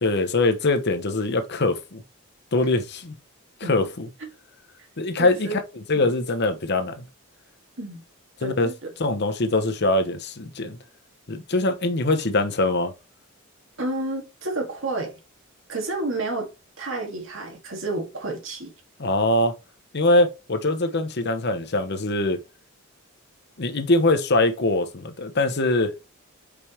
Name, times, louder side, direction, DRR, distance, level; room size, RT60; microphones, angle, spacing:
voice 1, 0.0-2.0 2.5-3.1 3.6-4.1 5.0-7.0 8.4-8.7 9.0-10.8 11.3-12.9 19.0-19.5 19.9-22.4 23.6-25.9, left 2 dB, 50° left, 0.9 m, -23 dB
voice 2, 5.2-5.6 7.8-8.0 8.4-8.9 13.8-15.1 15.7-16.5 16.8-18.7, right 2 dB, 60° right, 2.3 m, -30 dB
5.2 x 4.9 x 4.4 m
head